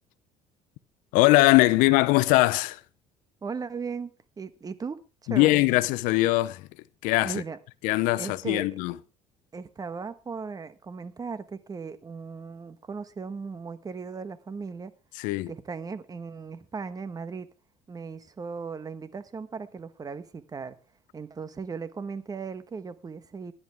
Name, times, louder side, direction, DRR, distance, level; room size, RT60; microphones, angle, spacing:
voice 1, 1.1-2.8 5.3-6.6 7.0-7.4 7.8-8.9 15.2-15.5, left 19 dB, 80° left, 0.7 m, -21 dB
voice 2, 3.4-5.6 7.2-7.6 8.2-8.7 9.5-14.9 15.5-17.5 17.9-20.8 21.1-23.5, right 5 dB, 30° right, 1.3 m, -37 dB
16.5 x 11.0 x 3.6 m
cardioid pair, 100°, 13 cm